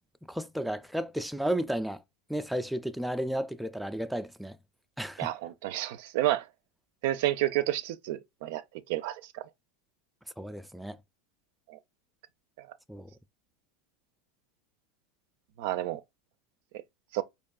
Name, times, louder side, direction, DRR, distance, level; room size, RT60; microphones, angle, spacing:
voice 1, 0.3-2.0 2.3-4.6 5.0-5.3 10.4-11.0 12.9-13.1, right 1 dB, ahead, 0.3 m, -33 dB
voice 2, 5.2-6.4 7.0-8.6 8.9-9.4 11.7-11.8 15.6-16.0 17.1-17.2, right 14 dB, 70° right, 0.4 m, -30 dB
4.5 x 2.9 x 2.3 m
hypercardioid pair, 100°, 0 cm